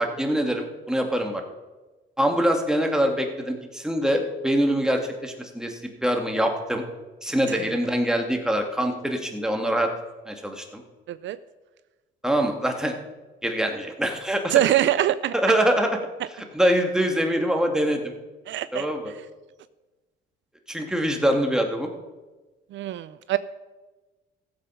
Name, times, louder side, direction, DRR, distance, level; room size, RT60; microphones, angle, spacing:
voice 1, 0.0-1.4 2.2-6.8 7.2-9.9 10.3-10.8 12.2-13.0 13.4-14.5 15.3-15.9 16.5-18.1 18.7-19.1 20.7-21.9, equal, 5° right, 3 dB, 2.0 m, -24 dB
voice 2, 11.1-11.4 14.5-15.3 18.5-19.1 22.7-23.4, right 13 dB, 70° right, 15 dB, 0.5 m, -24 dB
15.0 x 7.7 x 5.6 m, 1.2 s
cardioid pair, 90°, 20 cm